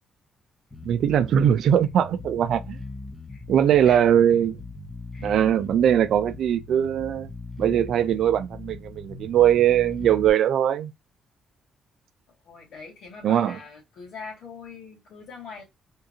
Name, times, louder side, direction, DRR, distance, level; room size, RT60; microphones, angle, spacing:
Bass guitar, 0.7-10.3, left 2 dB, 15° left, 0.7 m, -40 dB
voice 1, 0.8-2.8 3.5-4.6 5.2-7.3 7.6-10.9 13.2-13.6, right 10 dB, 70° right, 0.4 m, -21 dB
voice 2, 3.3-4.1 5.1-5.4 12.4-15.6, left 4 dB, 70° left, 2.2 m, -43 dB
3.7 x 2.4 x 2.8 m
cardioid pair, 90°, 0 cm